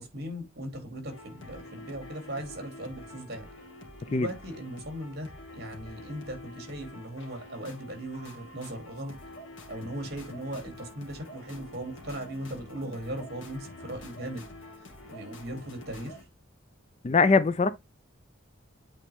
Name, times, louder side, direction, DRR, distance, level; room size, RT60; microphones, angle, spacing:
voice 1, 0.0-3.5 4.1-9.2 9.7-14.5 15.0-16.2, right 1 dB, 50° right, 2.9 m, -38 dB
sound 1, 1.1-16.2, left 1 dB, 65° left, 2.1 m, -47 dB
voice 2, 17.0-17.7, left 4 dB, 30° left, 0.4 m, -21 dB
8.6 x 4.3 x 3.5 m
head